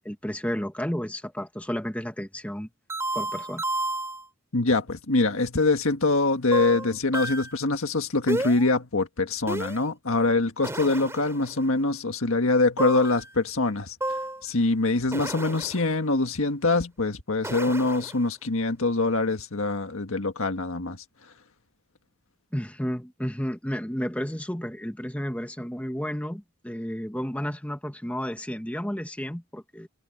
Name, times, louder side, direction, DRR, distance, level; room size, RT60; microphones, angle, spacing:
voice 1, 0.1-2.7 3.1-3.6 22.5-29.9, equal, 5° left, 1.8 m, -32 dB
sound 1, 2.9-4.2 6.5-7.6 8.3-8.7 9.5-9.8 10.6-11.6 12.8-13.3 14.0-14.4 15.1-15.9 17.4-18.2, right 1 dB, 10° right, 3.6 m, -32 dB
voice 2, 4.5-21.3, left 3 dB, 70° left, 1.6 m, -24 dB
head